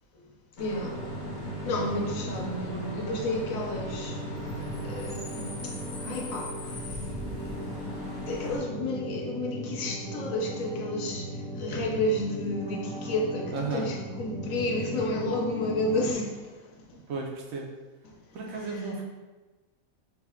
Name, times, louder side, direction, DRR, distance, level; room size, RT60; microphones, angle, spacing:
voice 1, 0.6-1.0 1.6-4.2 4.8-6.9 8.3-16.6 18.0-18.1 18.5-18.8, left 1 dB, 80° left, 0 dB, 1.0 m, -31 dB
Bus / Idling / Screech, 0.6-8.6, equal, 50° left, 0.6 m, -40 dB
sound 1, 0.8-16.1, right 1 dB, 55° right, 0.8 m, -37 dB
voice 2, 13.5-13.9 17.1-17.7 18.3-19.0, right 3 dB, 80° right, 1 dB, 1.0 m, -33 dB
3.5 x 2.1 x 3.4 m, 1.2 s
omnidirectional pair, 1.4 m